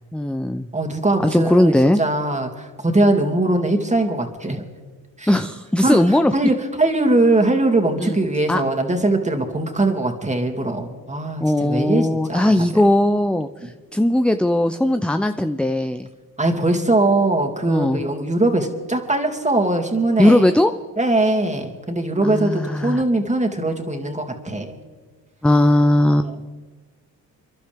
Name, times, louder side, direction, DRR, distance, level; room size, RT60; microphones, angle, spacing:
voice 1, 0.1-0.7 1.3-2.0 5.3-6.3 8.0-8.2 8.5-8.6 11.4-16.1 17.7-18.0 20.2-20.7 22.2-23.0 25.4-26.3, left 1 dB, 5° left, 9 dB, 0.6 m, -18 dB
voice 2, 0.7-4.6 5.2-5.3 5.8-12.8 13.6-13.7 16.4-20.4 21.0-24.8 26.1-26.3, right 2 dB, 20° right, 3 dB, 2.6 m, -21 dB
28.0 x 11.5 x 3.5 m, 1.4 s
supercardioid pair, 60°, 39 cm